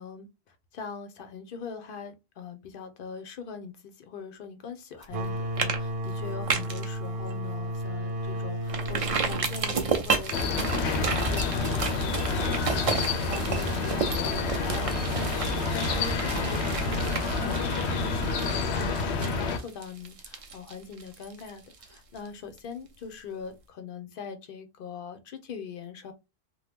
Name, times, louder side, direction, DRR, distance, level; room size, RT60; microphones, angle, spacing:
voice 1, 0.0-26.1, left 6 dB, 60° left, 0.8 m, -42 dB
sound 1, 5.0-5.3 5.6-5.8 6.1-6.9 7.3-7.4 7.8-7.9 8.7-22.3 22.6-22.7, right 5 dB, 45° right, 0.5 m, -32 dB
sound 2, 5.1-10.5, equal, 70° right, 0.9 m, -33 dB
sound 3, 10.3-19.6, left 4 dB, 90° left, 0.9 m, -28 dB
2.8 x 2.2 x 3.4 m
omnidirectional pair, 1.1 m